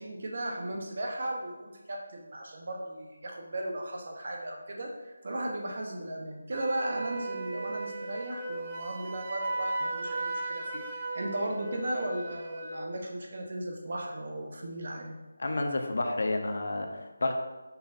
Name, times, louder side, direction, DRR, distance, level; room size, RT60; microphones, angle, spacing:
voice 1, 0.0-15.2, right 1 dB, 40° right, 1 dB, 0.9 m, -36 dB
Wind instrument woodwind instrument, 6.5-12.9, right 2 dB, 20° right, 0.5 m, -36 dB
voice 2, 15.4-17.3, left 2 dB, 50° left, 4 dB, 0.7 m, -30 dB
5.6 x 4.6 x 4.1 m, 1.2 s
figure-of-eight pair, 175°, 0 cm